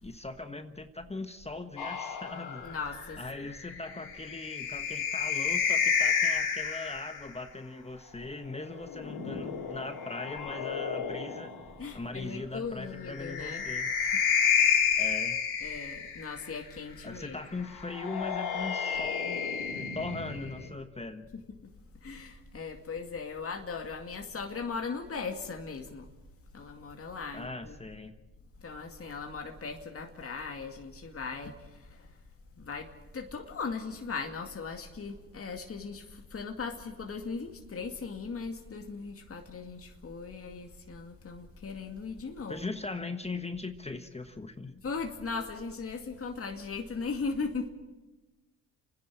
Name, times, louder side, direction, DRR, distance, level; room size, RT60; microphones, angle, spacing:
voice 1, 0.0-2.7 3.2-11.6 11.9-13.9 15.0-15.4 17.0-21.3 27.3-28.1 42.5-44.8, left 3 dB, 15° left, 8 dB, 1.4 m, -40 dB
sound 1, 1.8-7.3 8.7-11.7 13.0-16.5 17.7-20.7, left 6 dB, 65° left, 4.1 m, -31 dB
voice 2, 2.6-3.2 11.8-13.6 14.0-14.2 15.6-17.4 22.0-26.1 26.5-27.8 28.6-32.1 32.6-42.6 44.8-47.7, left 4 dB, 35° left, 3 dB, 2.3 m, -38 dB
30.0 x 10.5 x 8.8 m, 1.1 s
supercardioid pair, 65°, 41 cm